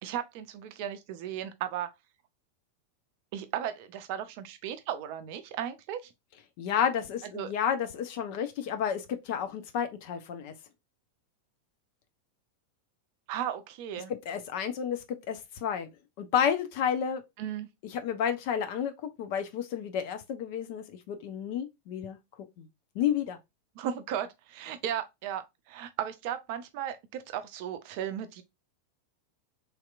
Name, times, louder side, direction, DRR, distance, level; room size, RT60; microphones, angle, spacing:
voice 1, 0.0-1.9 3.3-6.0 7.3-7.5 13.3-14.1 17.4-17.7 23.8-28.4, right 10 dB, 45° right, 0.5 m, -35 dB
voice 2, 6.6-10.5 14.1-15.9 16.2-17.2 17.9-22.2 22.6-22.7 22.9-23.4, left 8 dB, 45° left, 0.6 m, -31 dB
3.3 x 2.8 x 2.3 m
figure-of-eight pair, 90°, 0 cm